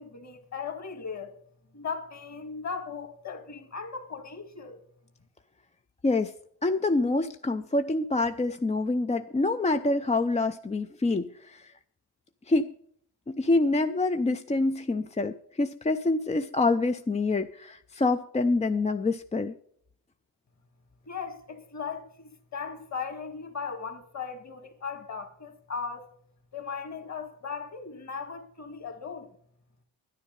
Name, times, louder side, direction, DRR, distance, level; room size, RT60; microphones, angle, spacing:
voice 1, 0.0-1.3 1.7-4.8 21.1-26.1 26.5-29.4, left 5 dB, 35° left, 2.0 m, -37 dB
voice 2, 6.6-11.7 12.5-12.7 13.3-19.5, left 2 dB, 15° left, 0.4 m, -26 dB
10.5 x 10.0 x 5.3 m
cardioid pair, 95°, 47 cm